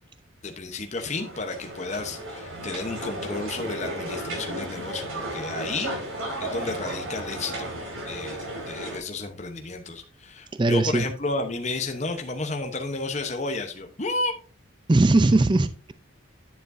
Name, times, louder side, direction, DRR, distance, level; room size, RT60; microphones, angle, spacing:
voice 1, 0.4-5.9 6.4-7.7 8.1-14.3, left 3 dB, 35° left, 4 dB, 0.9 m, -32 dB
sound 1, 1.0-9.0, right 1 dB, 90° right, 4.7 m, -34 dB
voice 2, 10.6-11.0 14.9-15.9, right 2 dB, 25° right, 12 dB, 0.4 m, -19 dB
10.5 x 7.1 x 2.6 m, 0.35 s
head